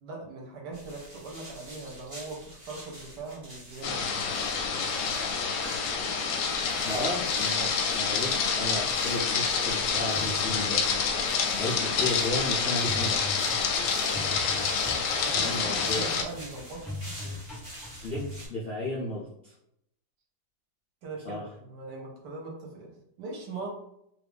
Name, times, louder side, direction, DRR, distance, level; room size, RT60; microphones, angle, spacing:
voice 1, 0.0-4.1 6.8-7.0 15.0-17.4 21.0-23.7, right 3 dB, 70° right, -1 dB, 1.4 m, -41 dB
sound 1, 0.7-18.5, right 1 dB, 20° right, 1.2 m, -46 dB
sound 2, 3.8-16.2, left 5 dB, 80° left, 1.2 m, -28 dB
voice 2, 6.8-10.8 11.6-13.5 15.3-16.1 17.9-18.2 18.5-19.5 21.2-21.4, left 1 dB, 60° left, -7 dB, 0.6 m, -34 dB
sound 3, 9.8-10.9 12.8-18.4, left 1 dB, ahead, 0.9 m, -41 dB
3.1 x 2.5 x 3.4 m, 0.77 s
omnidirectional pair, 1.9 m